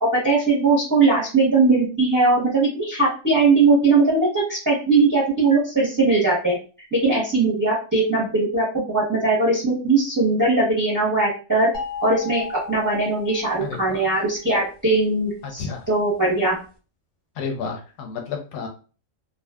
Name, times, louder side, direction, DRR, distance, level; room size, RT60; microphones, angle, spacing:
voice 1, 0.0-6.6 6.9-11.7 12.0-16.6, right 3 dB, 20° right, -6 dB, 0.6 m, -20 dB
sound 1, 11.7-14.0, left 5 dB, 30° left, 0.5 m, -34 dB
voice 2, 13.6-14.0 15.4-15.9 17.4-18.7, left 5 dB, 85° left, 3 dB, 1.0 m, -31 dB
2.6 x 2.3 x 2.2 m, 0.36 s
omnidirectional pair, 1.4 m